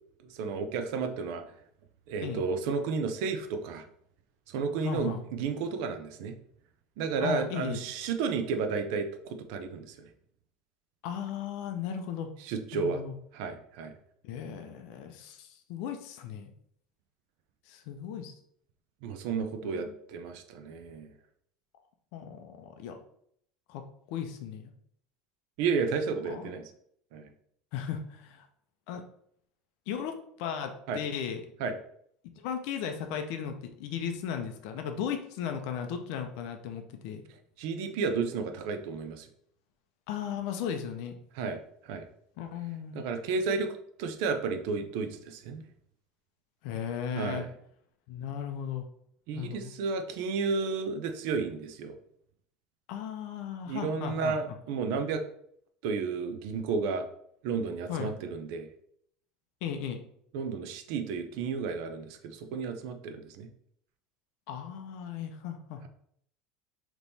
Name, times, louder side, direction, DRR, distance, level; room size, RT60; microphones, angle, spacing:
voice 1, 0.3-1.4 2.1-3.8 4.5-6.4 7.0-10.1 12.4-13.0 13.3-13.9 19.0-21.1 25.6-26.7 27.1-27.3 30.9-31.0 31.6-31.7 37.6-39.3 41.3-42.0 42.9-45.7 47.2-47.5 49.3-51.9 53.7-55.2 55.8-57.0 57.4-58.7 60.3-63.5, right 5 dB, 60° right, 7 dB, 0.5 m, -32 dB
voice 2, 4.8-5.2 7.2-7.8 11.0-12.3 12.7-13.1 14.2-16.5 17.7-18.3 19.6-19.9 22.1-23.0 23.7-24.7 26.3-26.6 27.7-28.5 28.9-29.0 29.9-31.4 32.4-33.5 33.8-37.2 40.1-41.1 42.4-43.0 46.6-47.4 48.1-48.8 49.3-49.7 52.9-54.4 57.9-58.2 59.6-60.0 64.5-65.9, left 8 dB, 60° left, 6 dB, 0.5 m, -36 dB
3.5 x 3.0 x 4.0 m, 0.68 s
cardioid pair, 170°, 0 cm